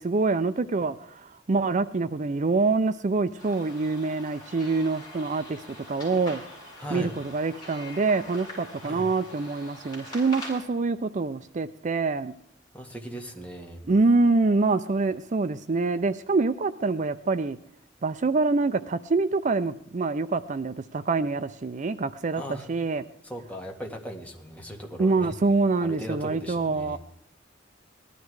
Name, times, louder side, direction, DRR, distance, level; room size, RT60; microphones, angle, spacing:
voice 1, 0.0-6.4 6.9-12.3 13.9-17.6 18.0-22.4 22.7-23.0 25.0-27.0, right 3 dB, 40° right, 12 dB, 0.5 m, -25 dB
sound 1, 3.4-10.6, left 1 dB, 25° left, 7.8 m, -43 dB
voice 2, 6.8-7.1 8.8-9.1 12.7-13.8 22.3-22.7 23.2-25.3 25.8-27.0, equal, 10° left, 1 dB, 1.9 m, -38 dB
18.5 x 12.5 x 4.8 m, 0.72 s
head